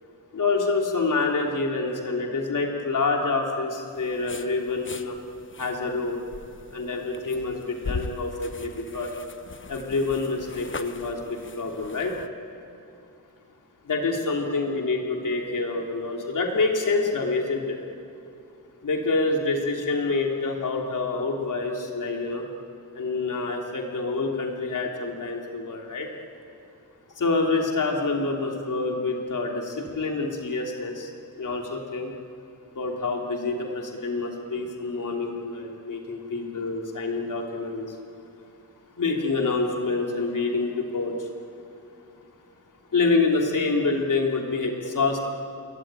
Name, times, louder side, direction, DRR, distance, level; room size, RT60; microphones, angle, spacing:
voice 1, 0.3-5.2 5.6-6.2 6.7-9.1 9.7-12.1 13.8-15.0 15.2-17.8 18.8-22.5 22.9-26.1 27.2-31.1 31.4-32.1 32.7-38.0 39.0-41.3 42.9-45.2, left 3 dB, 60° left, 1 dB, 3.1 m, -27 dB
sound 1, 3.9-12.3, left 4 dB, 35° left, 1.1 m, -40 dB
27.5 x 23.0 x 9.0 m, 2.6 s
wide cardioid pair, 160°, 35 cm